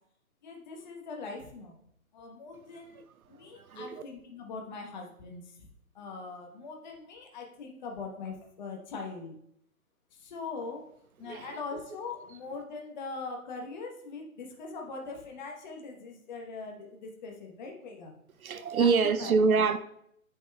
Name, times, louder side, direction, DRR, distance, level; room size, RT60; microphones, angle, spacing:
voice 1, 0.4-1.8 2.1-3.0 3.3-5.6 5.9-9.4 10.1-10.8 11.2-18.1 18.8-19.3, left 4 dB, 30° left, 1.1 m, -41 dB
voice 2, 3.5-4.0 11.3-11.5 11.7-11.8 18.4-19.8, right 5 dB, 75° right, 0.7 m, -26 dB
10.0 x 5.1 x 2.3 m
hypercardioid pair, 150°, 43 cm